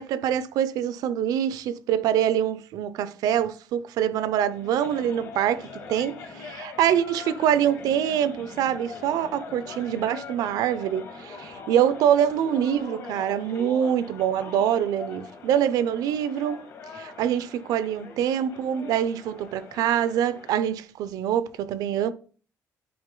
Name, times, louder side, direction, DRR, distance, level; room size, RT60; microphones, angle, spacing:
voice 1, 0.0-16.6 16.9-22.1, right 10 dB, 85° right, 0.5 m, -25 dB
sound 1, 4.5-20.7, left 5 dB, 60° left, 1.5 m, -42 dB
10.5 x 3.7 x 3.8 m
cardioid pair, 180°, 6 cm